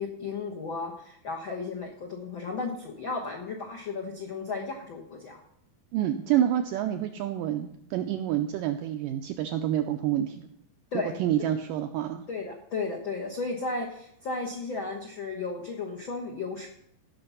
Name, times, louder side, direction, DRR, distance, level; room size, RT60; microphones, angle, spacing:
voice 1, 0.0-5.4 10.9-11.1 12.3-16.7, left 3 dB, 85° left, 0 dB, 1.1 m, -34 dB
voice 2, 5.9-10.5 10.9-12.2, right 11 dB, 85° right, 6 dB, 1.9 m, -28 dB
15.5 x 5.9 x 5.6 m, 0.72 s
omnidirectional pair, 4.5 m